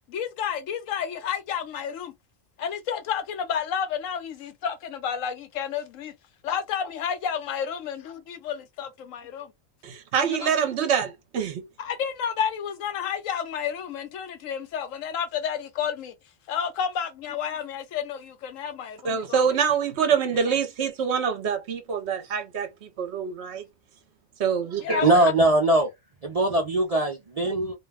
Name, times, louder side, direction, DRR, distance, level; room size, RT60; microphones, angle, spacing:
voice 1, 0.1-2.1 2.6-6.1 6.4-9.5 10.2-10.5 11.8-16.1 16.5-19.4 20.5-20.6 24.8-25.3, left 8 dB, 80° left, 1.0 m, -31 dB
voice 2, 9.8-11.7 19.0-23.7 24.4-25.2, right 7 dB, 65° right, 0.9 m, -26 dB
voice 3, 25.0-25.9 26.2-27.8, right 2 dB, 45° right, 0.4 m, -21 dB
2.6 x 2.1 x 3.4 m
omnidirectional pair, 1.3 m